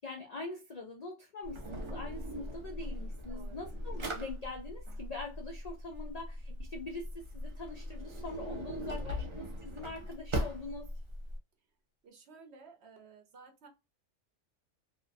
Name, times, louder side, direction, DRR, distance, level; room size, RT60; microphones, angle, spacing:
voice 1, 0.0-10.9, left 3 dB, 60° left, 0.4 m, -43 dB
Drawer open or close, 1.4-11.4, equal, 50° right, 0.3 m, -40 dB
voice 2, 3.3-3.6 8.8-9.3 12.0-13.7, right 5 dB, 65° right, 0.8 m, -56 dB
sound 1, 9.0-9.8, left 6 dB, 25° right, 0.9 m, -43 dB
2.8 x 2.1 x 2.5 m
omnidirectional pair, 1.3 m